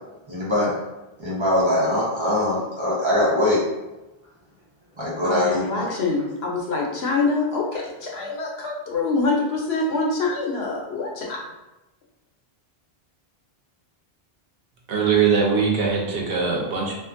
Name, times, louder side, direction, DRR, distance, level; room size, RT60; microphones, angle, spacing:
voice 1, 0.3-0.8 1.2-3.6 5.0-5.8, left 1 dB, 30° right, -7 dB, 0.7 m, -22 dB
voice 2, 5.2-11.4, left 3 dB, 85° left, -1 dB, 0.9 m, -25 dB
voice 3, 14.9-16.9, right 6 dB, 70° right, -2 dB, 0.8 m, -21 dB
2.4 x 2.4 x 2.5 m, 1.0 s
omnidirectional pair, 1.0 m